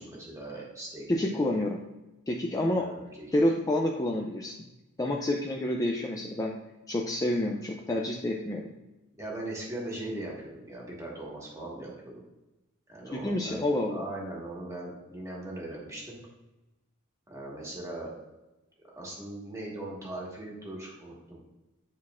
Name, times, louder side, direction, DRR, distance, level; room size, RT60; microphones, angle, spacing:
voice 1, 0.0-1.4 2.8-3.4 9.2-12.3 12.9-16.2 17.3-18.1 18.9-21.5, right 1 dB, 15° right, -4 dB, 1.6 m, -40 dB
voice 2, 1.1-1.8 2.3-2.9 3.3-4.6 5.0-6.5 6.9-8.7 13.1-14.0, left 1 dB, 15° left, 0 dB, 0.4 m, -28 dB
9.4 x 4.1 x 2.4 m, 1.0 s
head